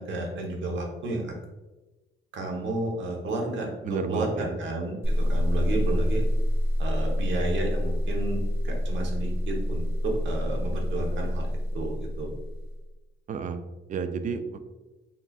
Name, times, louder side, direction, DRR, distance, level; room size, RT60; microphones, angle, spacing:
voice 1, 0.0-1.3 2.3-6.2 6.8-11.5 11.7-12.3, right 2 dB, 70° right, 0 dB, 1.0 m, -32 dB
voice 2, 3.8-4.8 13.3-13.6 13.9-14.6, right 5 dB, 40° right, 10 dB, 0.4 m, -32 dB
sound 1, 5.0-12.8, equal, 10° right, 1.0 m, -27 dB
4.0 x 3.8 x 2.3 m, 1.1 s
cardioid pair, 90°, 20 cm